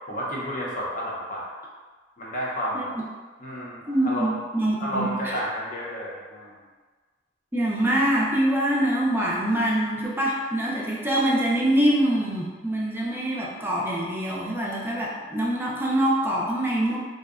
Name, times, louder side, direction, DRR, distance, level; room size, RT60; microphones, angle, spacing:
voice 1, 0.1-1.5 2.2-2.9 3.4-4.4 4.8-6.6, equal, 45° left, -5 dB, 0.6 m, -31 dB
voice 2, 3.9-5.3 7.5-17.0, right 1 dB, 10° right, -4 dB, 0.4 m, -24 dB
2.6 x 2.1 x 2.4 m, 1.4 s
head